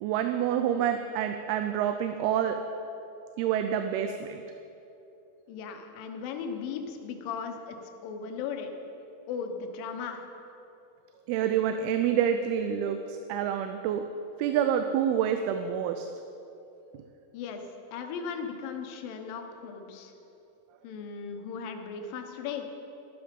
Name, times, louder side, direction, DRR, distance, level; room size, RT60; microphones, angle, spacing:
voice 1, 0.0-2.6 3.4-4.4 11.3-14.0 14.4-16.1, right 9 dB, 90° right, 7 dB, 2.6 m, -27 dB
voice 2, 5.5-8.7 9.3-10.2 17.3-17.6 17.9-20.1 20.8-22.7, left 6 dB, 70° left, 5 dB, 2.6 m, -37 dB
14.0 x 12.5 x 5.2 m, 2.9 s
omnidirectional pair, 4.4 m